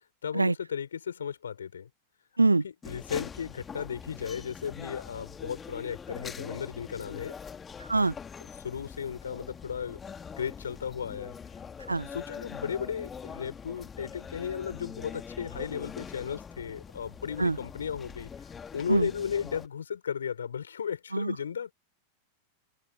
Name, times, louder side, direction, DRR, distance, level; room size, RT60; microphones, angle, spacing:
voice 1, 0.2-1.9 2.6-7.4 8.6-10.0 10.4-11.4 12.1-21.7, left 7 dB, 70° left, 5.4 m, -35 dB
sound 1, 2.8-19.7, left 6 dB, 20° left, 2.1 m, -44 dB
voice 2, 7.8-8.1 11.9-12.1 17.4-17.6 18.9-19.1 21.1-21.3, right 3 dB, 80° right, 0.4 m, -24 dB
figure-of-eight pair, 90°, 0 cm